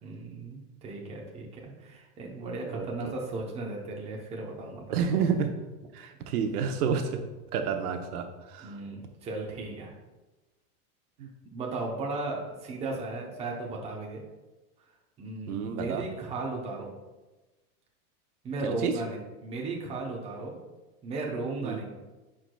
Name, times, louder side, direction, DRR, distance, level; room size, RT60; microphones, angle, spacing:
voice 1, 0.0-5.2 8.6-9.9 11.5-14.2 15.2-16.9 18.4-20.6 21.0-21.9, right 3 dB, 15° right, -1 dB, 0.7 m, -36 dB
voice 2, 2.7-3.1 4.9-5.5 5.9-7.2 7.5-8.8 11.2-11.3 15.5-16.1 18.6-18.9 21.6-21.8, right 6 dB, 75° right, 5 dB, 0.9 m, -30 dB
10.0 x 4.9 x 2.3 m, 1.1 s
supercardioid pair, 150°, 45 cm